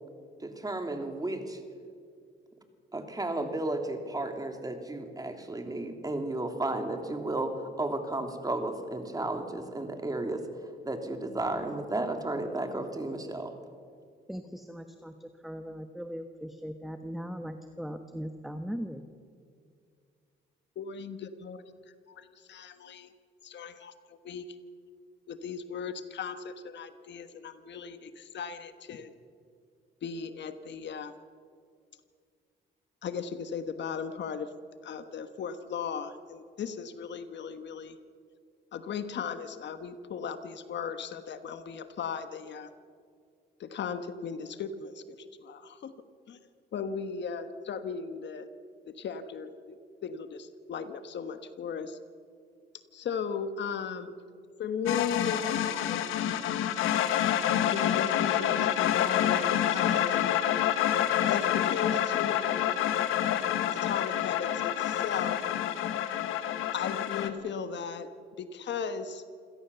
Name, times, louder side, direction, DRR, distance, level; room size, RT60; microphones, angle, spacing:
voice 1, 0.4-1.6 2.9-10.4 10.8-13.5, right 2 dB, 20° right, 5 dB, 2.9 m, -33 dB
voice 2, 14.3-19.0, equal, ahead, 7 dB, 1.3 m, -39 dB
voice 3, 20.7-21.7 22.1-23.1 23.4-24.4 25.3-29.1 30.0-31.1 33.0-34.5 34.8-38.0 38.7-42.7 43.6-45.9 46.3-46.4 46.7-48.5 48.8-49.8 50.0-52.0 52.9-54.2 54.6-56.0 57.7-60.3 61.3-62.8 63.7-65.4 66.7-68.1 68.4-69.2, left 6 dB, 65° left, 10 dB, 1.4 m, -37 dB
sound 1, 54.9-67.3, left 10 dB, 90° left, 1.4 m, -28 dB
27.5 x 17.0 x 7.0 m, 2.2 s
cardioid pair, 90°, 20 cm